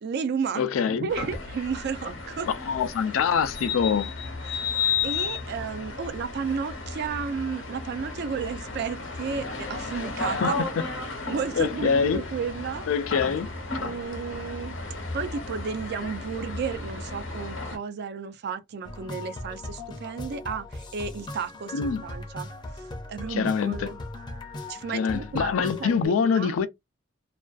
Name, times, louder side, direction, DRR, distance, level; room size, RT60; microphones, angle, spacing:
voice 1, 0.0-2.5 4.4-4.7 5.0-10.6 11.3-12.9 13.8-14.8 15.1-22.5 22.8-22.9 23.1-24.0 24.7-26.6, right 6 dB, 55° right, 0.4 m, -33 dB
voice 2, 0.6-1.1 2.5-4.1 10.4-10.8 11.6-12.2 12.9-13.5 21.7-22.0 23.3-23.9 24.9-26.7, left 6 dB, 85° left, 0.4 m, -25 dB
sound 1, 1.1-17.8, left 4 dB, 70° left, 0.8 m, -33 dB
sound 2, 18.8-26.1, left 2 dB, 25° left, 0.5 m, -39 dB
2.4 x 2.2 x 2.4 m
head